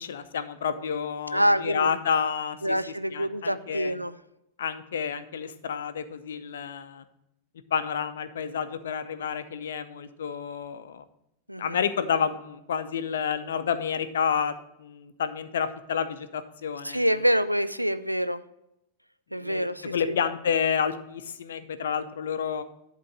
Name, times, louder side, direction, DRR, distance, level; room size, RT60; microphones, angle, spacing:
voice 1, 0.0-2.8 3.1-3.9 4.6-7.0 7.7-11.0 11.6-14.5 14.8-17.0 19.3-22.6, left 7 dB, 65° left, 12 dB, 0.6 m, -29 dB
voice 2, 1.3-1.9 2.6-4.2 11.5-11.8 16.8-18.4 19.3-20.2, equal, 90° right, 12 dB, 0.4 m, -26 dB
11.0 x 3.7 x 6.0 m, 0.83 s
figure-of-eight pair, 90°, 0 cm